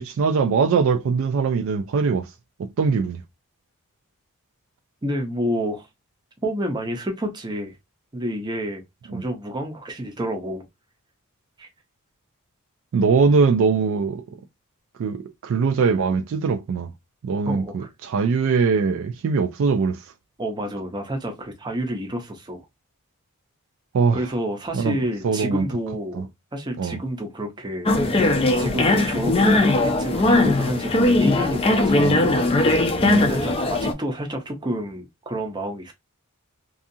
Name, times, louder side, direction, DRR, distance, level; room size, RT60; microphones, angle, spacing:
voice 1, 0.0-2.3 2.6-3.2 9.1-9.2 12.9-14.2 15.0-16.9 17.2-20.0 23.9-24.2 24.7-24.9 25.2-25.6 26.2-26.3 26.8-27.0 32.0-32.2 33.0-33.3, right 5 dB, 60° right, 0.3 m, -21 dB
voice 2, 5.0-5.9 6.4-7.8 8.1-8.8 9.1-10.6 11.6-11.7 17.5-17.9 20.4-22.6 24.1-27.9 28.6-32.9 33.3-35.9, equal, 20° right, 0.6 m, -29 dB
sound 1, 27.9-33.9, left 2 dB, 25° left, 0.4 m, -19 dB
2.6 x 2.4 x 2.6 m
head